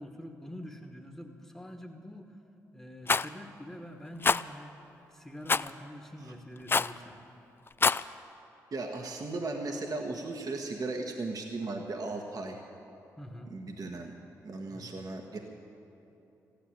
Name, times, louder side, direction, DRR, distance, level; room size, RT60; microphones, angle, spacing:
voice 1, 0.0-2.4 2.7-4.7 5.1-7.3 13.2-13.5 14.7-15.0, equal, 10° left, 2 dB, 1.4 m, -46 dB
Rattle, 3.1-3.3 4.2-4.4 5.5-5.7 6.7-7.0 7.7-8.0, left 4 dB, 30° left, 0.4 m, -25 dB
voice 2, 8.7-12.6 13.5-14.1 14.4-15.4, right 3 dB, 50° right, 2 dB, 1.4 m, -36 dB
15.0 x 10.0 x 8.9 m, 2.9 s
hypercardioid pair, 40°, 8 cm